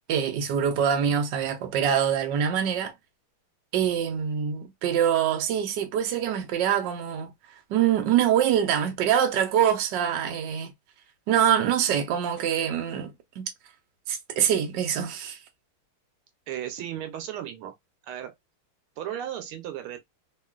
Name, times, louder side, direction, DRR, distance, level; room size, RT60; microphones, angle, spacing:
voice 1, 0.0-2.9 3.7-7.3 7.7-10.7 11.3-13.5 14.1-15.4, right 9 dB, 65° right, 1.3 m, -24 dB
voice 2, 16.5-17.7 18.1-18.3 19.0-20.0, right 11 dB, 85° right, 1.6 m, -35 dB
3.6 x 2.4 x 2.3 m
omnidirectional pair, 2.3 m